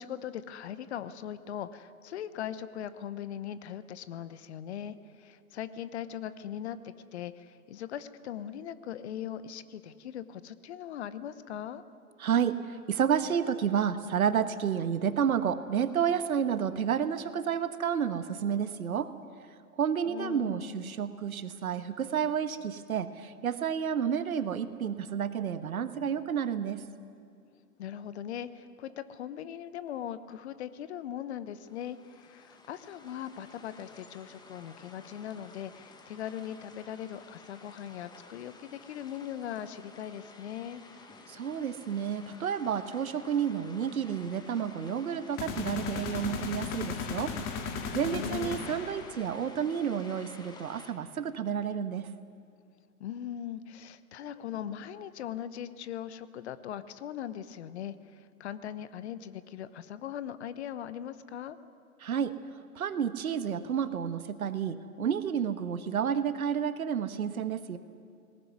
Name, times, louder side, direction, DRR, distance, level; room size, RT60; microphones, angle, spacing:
voice 1, 0.0-11.8 20.1-20.9 27.8-40.8 48.1-48.6 53.0-61.6, left 10 dB, 45° left, 14 dB, 1.1 m, -40 dB
voice 2, 12.2-19.1 19.8-26.8 41.3-47.3 47.9-52.1 62.0-62.3 62.7-67.8, right 8 dB, 65° right, 12 dB, 1.4 m, -30 dB
sound 1, 31.5-50.9, left 3 dB, 10° left, 1.5 m, -53 dB
sound 2, 45.4-49.3, left 5 dB, 30° left, 2.2 m, -36 dB
19.0 x 19.0 x 9.4 m, 2.4 s
figure-of-eight pair, 125°, 46 cm